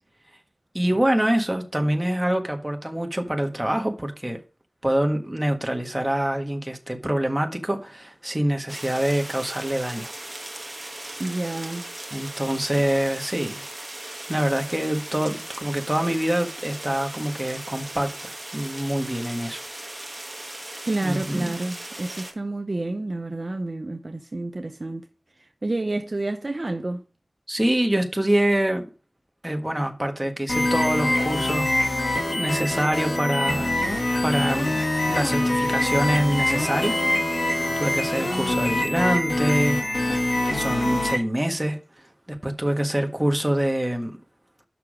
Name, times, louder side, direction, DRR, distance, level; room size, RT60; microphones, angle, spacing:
voice 1, 0.7-4.4 4.8-10.1 10.8-11.1 12.1-13.6 14.3-19.6 21.0-21.5 27.5-28.8 29.4-33.8 34.2-34.8 35.1-37.0 37.4-39.8 40.1-41.8 42.3-44.1, right 1 dB, 15° right, 1.5 m, -25 dB
sound 1, 8.7-22.3, right 1 dB, 30° right, 1.4 m, -38 dB
voice 2, 11.2-11.9 20.9-25.1 25.4-27.0, right 2 dB, 50° right, 0.7 m, -29 dB
sound 2, 30.5-41.2, left 1 dB, 65° left, 1.9 m, -24 dB
6.9 x 5.9 x 5.0 m
wide cardioid pair, 60°, 0 cm